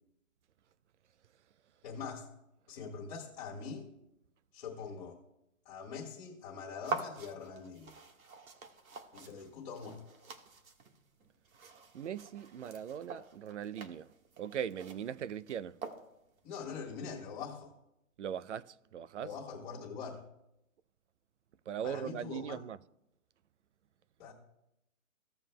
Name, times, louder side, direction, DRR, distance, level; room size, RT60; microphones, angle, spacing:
voice 1, 1.8-2.3 2.7-3.9 4.5-5.2 5.6-8.0 9.1-10.0 16.4-17.7 19.2-20.2 21.8-22.6 24.2-24.3, left 5 dB, 35° left, 1.8 m, -43 dB
sound 1, 6.8-16.4, right 4 dB, 85° right, 1.6 m, -46 dB
voice 2, 11.9-14.1 14.4-15.8 18.2-19.3 21.7-22.8, right 9 dB, 60° right, 0.5 m, -39 dB
16.5 x 7.1 x 2.2 m
hypercardioid pair, 165°, 41 cm